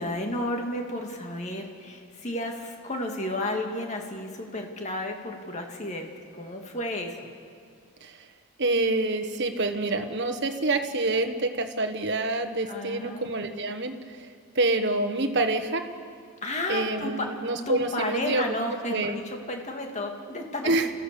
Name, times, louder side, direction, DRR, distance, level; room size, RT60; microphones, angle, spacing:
voice 1, 0.0-7.3 12.7-13.4 16.4-17.3 17.7-20.7, left 1 dB, 30° left, 2 dB, 2.2 m, -32 dB
voice 2, 8.6-14.3 14.5-15.8 16.7-18.5 18.9-19.2 20.6-20.9, right 2 dB, 50° right, 6 dB, 1.4 m, -27 dB
29.5 x 15.0 x 6.9 m, 2.2 s
head